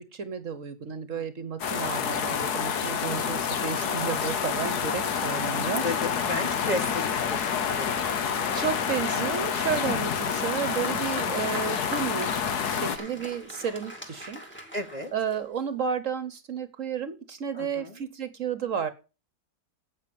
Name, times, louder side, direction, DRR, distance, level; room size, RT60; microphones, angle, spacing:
voice 1, 0.0-5.8 8.5-12.4 12.6-14.4 15.1-18.9, right 7 dB, 55° right, 13 dB, 1.2 m, -32 dB
sound 1, 1.6-13.0, left 7 dB, 80° left, 1.7 m, -28 dB
voice 2, 4.4-4.9 5.8-8.8 12.8-13.3 14.7-15.1 17.5-18.0, left 2 dB, 25° left, 5 dB, 1.6 m, -35 dB
Applause, 10.2-15.8, right 1 dB, 5° left, 2.2 m, -42 dB
8.5 x 7.2 x 8.3 m, 0.33 s
omnidirectional pair, 1.7 m